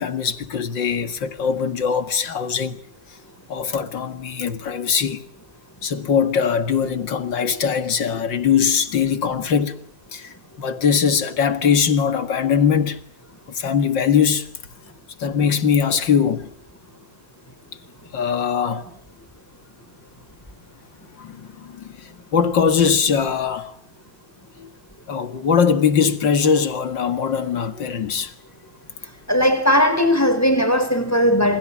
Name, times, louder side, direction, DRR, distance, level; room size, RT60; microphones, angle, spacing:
voice 1, 0.0-2.8 3.5-5.2 5.8-9.8 10.1-13.0 13.5-14.5 15.2-16.5 18.1-18.9 21.2-23.8 24.6-24.7 25.1-28.3, left 7 dB, 75° left, 2.5 m, -21 dB
voice 2, 29.3-31.6, equal, 10° left, 4.8 m, -18 dB
28.5 x 28.5 x 6.2 m
omnidirectional pair, 2.0 m